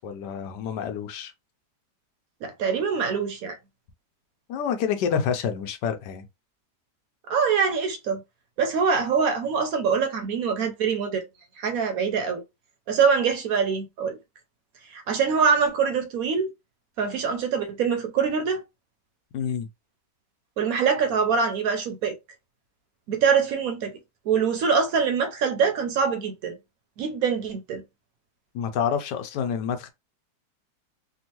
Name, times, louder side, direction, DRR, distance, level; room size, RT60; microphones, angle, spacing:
voice 1, 0.0-1.3 4.5-6.3 19.3-19.7 28.5-29.9, left 7 dB, 85° left, 1.2 m, -28 dB
voice 2, 2.4-3.6 7.3-8.2 8.6-11.2 11.6-12.4 12.9-14.2 14.9-16.5 17.0-18.6 20.6-22.2 23.1-23.9 24.3-26.5 27.0-27.8, right 6 dB, 65° right, 1.0 m, -24 dB
3.6 x 2.2 x 2.8 m
omnidirectional pair, 1.8 m